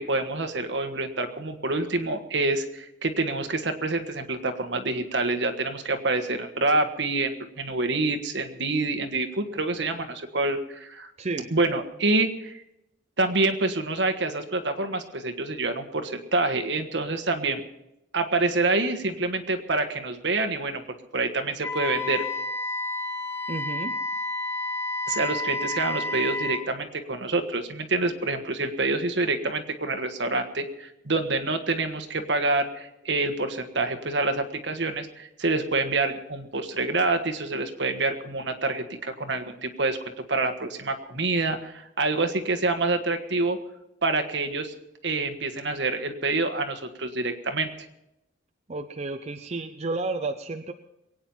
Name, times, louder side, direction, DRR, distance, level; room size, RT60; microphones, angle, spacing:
voice 1, 0.0-11.1 11.5-12.6 13.2-17.6 18.1-20.8 21.1-22.2 25.1-40.0 40.3-43.6 44.0-44.7 45.0-47.7, right 3 dB, 65° right, 6 dB, 1.5 m, -27 dB
voice 2, 11.2-11.5 23.5-24.0 48.7-50.7, right 3 dB, 35° right, 6 dB, 0.6 m, -31 dB
Wind instrument woodwind instrument, 21.6-26.7, left 2 dB, 15° left, 2.2 m, -30 dB
22.5 x 9.2 x 5.6 m, 0.86 s
head